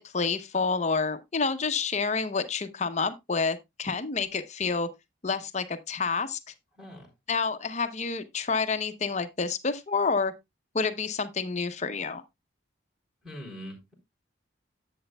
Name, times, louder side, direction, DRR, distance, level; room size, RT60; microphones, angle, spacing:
voice 1, 0.0-4.9 5.2-6.4 7.3-10.3 10.7-12.2, left 4 dB, 35° left, 0.7 m, -28 dB
voice 2, 13.2-14.0, equal, ahead, 3.6 m, -42 dB
10.5 x 8.0 x 2.2 m
head